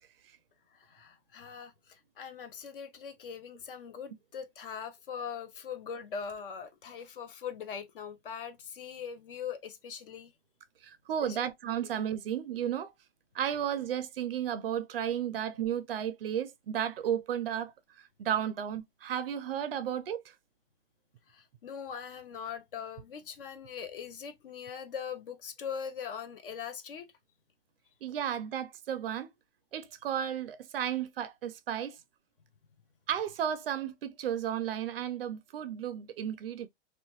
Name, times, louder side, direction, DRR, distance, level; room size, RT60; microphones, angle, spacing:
voice 1, 0.8-1.7 2.2-10.3 11.2-11.5 21.3-27.1, left 7 dB, 50° left, 0.6 m, -41 dB
voice 2, 10.8-12.9 13.3-17.7 18.2-20.2 28.0-29.3 29.7-31.9 33.1-36.7, right 9 dB, 55° right, 0.5 m, -33 dB
2.8 x 2.2 x 2.8 m
hypercardioid pair, 170°, 35 cm